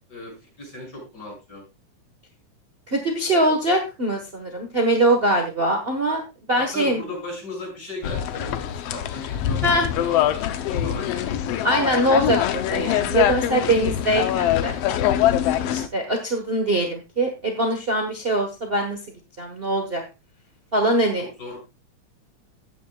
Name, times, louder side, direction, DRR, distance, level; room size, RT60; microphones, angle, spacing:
voice 1, 0.1-1.6 6.5-11.3 20.8-21.6, left 2 dB, 35° left, -2 dB, 6.8 m, -37 dB
voice 2, 2.9-6.2 6.5-7.0 9.6-9.9 11.6-14.8 15.5-19.0 19.4-20.0 20.7-21.3, right 1 dB, 50° right, 2 dB, 0.7 m, -22 dB
sound 1, 8.0-15.9, left 11 dB, 70° left, 1.6 m, -23 dB
14.5 x 9.8 x 2.3 m, 0.26 s
omnidirectional pair, 3.4 m